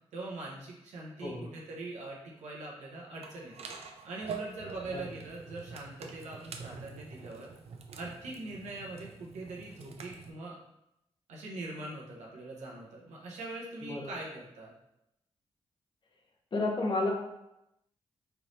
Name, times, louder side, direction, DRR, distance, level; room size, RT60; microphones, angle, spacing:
voice 1, 0.1-3.7 4.0-7.5 7.9-10.6 11.3-14.7, right 2 dB, 90° right, -3 dB, 1.0 m, -42 dB
sound 1, 3.2-10.3, right 5 dB, 65° right, 0.5 m, -46 dB
voice 2, 16.5-17.1, left 2 dB, 45° left, 0 dB, 1.0 m, -31 dB
4.5 x 3.3 x 2.7 m, 0.85 s
cardioid pair, 60°, 11 cm